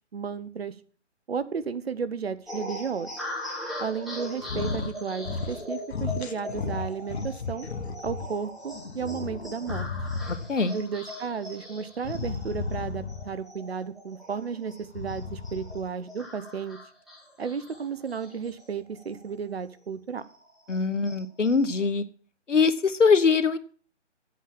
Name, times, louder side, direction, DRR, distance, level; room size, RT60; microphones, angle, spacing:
voice 1, 0.1-0.7 1.3-3.1 3.8-7.7 8.0-9.9 10.7-16.8 17.4-20.2, right 6 dB, 55° right, 14 dB, 1.0 m, -33 dB
sound 1, 2.5-19.4 19.7-19.8 20.2-21.8, left 1 dB, ahead, 1.3 m, -41 dB
sound 2, 4.4-5.0 5.2-5.6 5.9-8.3 8.7-10.6 12.0-13.4 14.8-15.9, left 4 dB, 60° left, 1.2 m, -34 dB
voice 2, 20.7-22.0 22.5-23.6, left 5 dB, 80° left, 13 dB, 1.2 m, -22 dB
8.3 x 7.3 x 7.6 m, 0.43 s
figure-of-eight pair, 155°, 36 cm